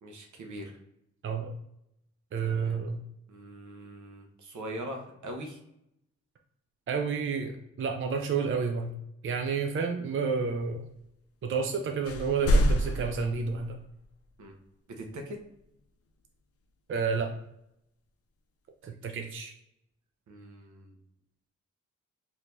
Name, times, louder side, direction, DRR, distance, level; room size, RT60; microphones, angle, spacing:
voice 1, 0.0-0.7 2.4-2.8 3.3-5.6 14.4-14.5 15.0-15.4 20.3-21.0, right 1 dB, 70° right, 3 dB, 0.8 m, -42 dB
voice 2, 2.3-3.0 6.9-9.0 9.2-10.9 11.4-13.8 16.9-17.3 18.8-19.5, right 5 dB, 40° right, 3 dB, 0.5 m, -30 dB
sound 1, 11.6-11.8 12.0-14.1, equal, 50° left, 0.5 m, -27 dB
4.4 x 2.8 x 2.6 m, 0.81 s
cardioid pair, 55°, 31 cm